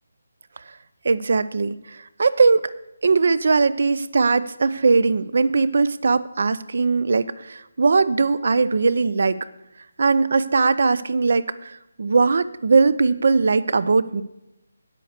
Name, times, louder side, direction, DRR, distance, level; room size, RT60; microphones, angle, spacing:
voice 1, 1.0-2.7 3.0-9.4 10.0-14.2, right 4 dB, 50° right, 16 dB, 0.5 m, -20 dB
9.3 x 8.4 x 6.5 m, 0.92 s
hypercardioid pair, 175°, 0 cm